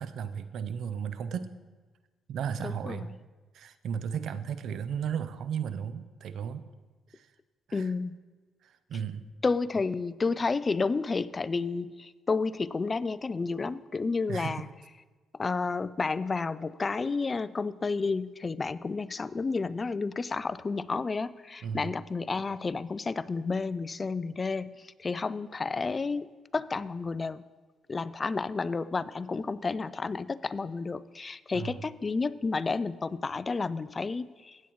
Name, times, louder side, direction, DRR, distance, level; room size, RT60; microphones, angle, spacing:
voice 1, 0.0-1.6 2.3-3.1 3.5-6.7 7.1-7.3 7.7-7.9 8.6-9.3 14.3-14.7 21.6-21.9 31.5-31.8, right 7 dB, 70° right, 12 dB, 0.5 m, -35 dB
voice 2, 2.6-3.1 7.7-8.2 9.4-14.7 15.3-27.4 27.9-34.6, left 4 dB, 30° left, 17 dB, 0.3 m, -31 dB
15.5 x 8.4 x 3.1 m, 1.3 s
cardioid pair, 90°, 0 cm